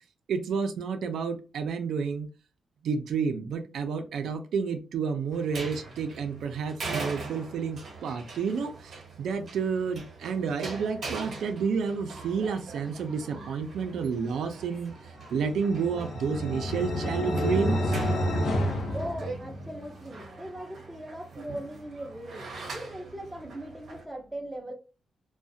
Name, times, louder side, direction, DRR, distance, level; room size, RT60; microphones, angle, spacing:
voice 1, 0.3-2.3 2.8-14.9 15.3-17.9, right 5 dB, 85° right, 0.4 m, -30 dB
sound 1, 5.3-24.0, right 3 dB, 55° right, 0.8 m, -42 dB
sound 2, 15.3-19.9, equal, 70° left, 0.5 m, -29 dB
voice 2, 18.3-24.7, right 1 dB, 5° right, 0.5 m, -40 dB
2.3 x 2.1 x 2.6 m
wide cardioid pair, 160°, 0 cm